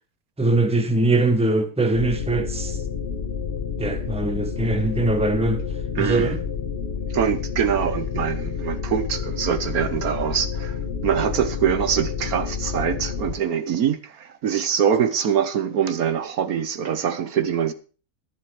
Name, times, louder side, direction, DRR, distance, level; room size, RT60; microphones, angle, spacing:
voice 1, 0.4-2.8 3.8-5.6 6.0-6.4, right 2 dB, 5° right, 1.2 m, -22 dB
sound 1, 1.9-13.4, left 6 dB, 40° left, 1.6 m, -29 dB
voice 2, 5.9-6.3 7.1-17.7, right 8 dB, 70° right, 1.4 m, -24 dB
11.5 x 10.5 x 4.8 m
omnidirectional pair, 1.7 m